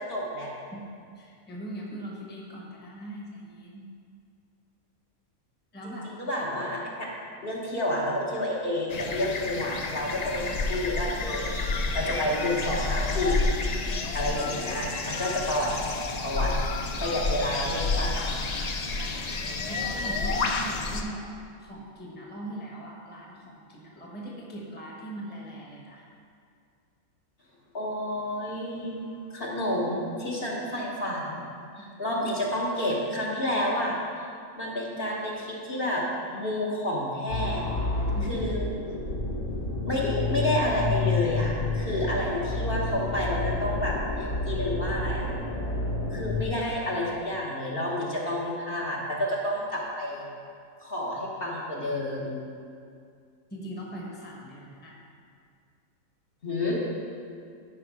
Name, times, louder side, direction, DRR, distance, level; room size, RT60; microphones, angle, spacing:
voice 1, 0.1-0.5 5.8-6.8 7.4-11.5 11.9-13.5 14.1-15.7 16.2-16.7 17.0-18.3 27.7-29.0 29.3-31.4 31.8-34.3 34.5-36.0 36.3-37.7 38.3-38.7 39.9-45.3 46.1-50.2 50.8-52.4 56.4-56.8, left 1 dB, 45° left, -5 dB, 1.3 m, -30 dB
voice 2, 1.1-3.9 5.7-6.1 18.9-19.3 19.7-21.2 21.6-26.1 31.7-31.9 38.1-38.5 53.5-55.0, right 1 dB, 10° left, -2 dB, 1.1 m, -40 dB
sound 1, 8.9-21.0, left 3 dB, 65° left, 0.4 m, -30 dB
sound 2, 37.3-46.4, left 3 dB, 80° left, 1.9 m, -29 dB
12.0 x 4.9 x 4.7 m, 2.3 s
omnidirectional pair, 1.5 m